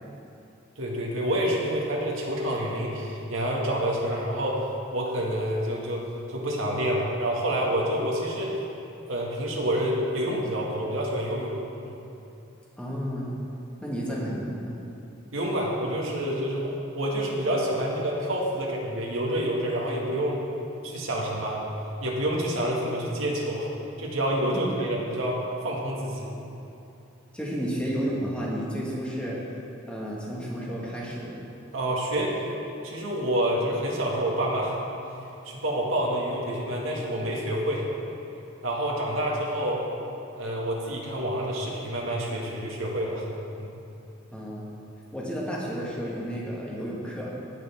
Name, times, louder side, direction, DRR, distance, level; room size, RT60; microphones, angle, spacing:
voice 1, 0.8-8.6 9.1-12.0 15.3-20.4 20.8-21.6 22.0-23.7 24.0-26.6 31.7-32.4 32.8-34.8 35.4-37.9 38.6-39.8 40.4-43.2 43.6-43.7, right 1 dB, 85° right, -3 dB, 1.9 m, -28 dB
voice 2, 12.8-13.3 13.8-14.7 24.5-24.9 27.3-29.4 29.9-31.4 44.3-44.6 45.1-47.3, equal, 5° left, -5 dB, 1.6 m, -32 dB
17.0 x 6.9 x 3.6 m, 2.8 s
head